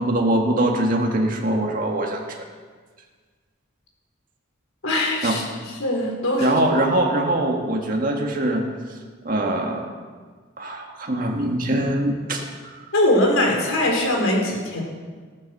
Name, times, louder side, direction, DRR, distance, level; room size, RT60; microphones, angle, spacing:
voice 1, 0.0-2.4 5.2-5.4 6.4-8.7 9.2-9.9 10.6-12.4 12.8-12.9, right 1 dB, 40° right, 0 dB, 1.8 m, -22 dB
voice 2, 4.8-5.4 5.8-6.6 12.9-14.8, left 1 dB, 90° left, -1 dB, 4.5 m, -21 dB
14.0 x 12.5 x 6.7 m, 1.5 s
head